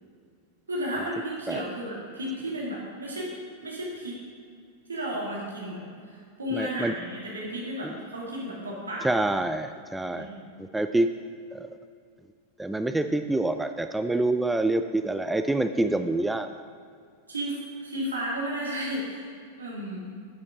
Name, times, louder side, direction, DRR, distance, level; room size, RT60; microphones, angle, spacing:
voice 1, 0.7-3.3 3.6-4.2 4.9-9.1 10.1-10.4 17.3-19.2 19.6-20.0, equal, 75° right, -4 dB, 2.7 m, -33 dB
voice 2, 6.5-6.9 7.8-8.0 9.0-10.3 10.6-11.1 11.5-11.7 12.6-16.5, right 2 dB, 5° right, 9 dB, 0.3 m, -26 dB
10.5 x 8.4 x 4.0 m, 2.2 s
figure-of-eight pair, 90°, 0 cm